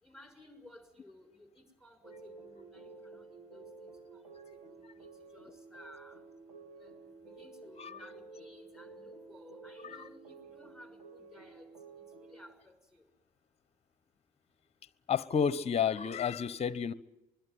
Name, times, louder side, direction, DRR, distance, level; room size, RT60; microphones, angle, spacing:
voice 1, 0.0-3.3 3.5-4.2 4.7-5.1 5.3-6.2 6.8-6.9 7.2-11.7 12.3-13.0, left 1 dB, ahead, 6.4 m, -56 dB
sound 1, 2.0-12.5, right 4 dB, 80° right, 2.6 m, -52 dB
voice 2, 15.1-16.9, left 7 dB, 30° left, 1.2 m, -31 dB
25.0 x 22.0 x 9.4 m
figure-of-eight pair, 60°, 20 cm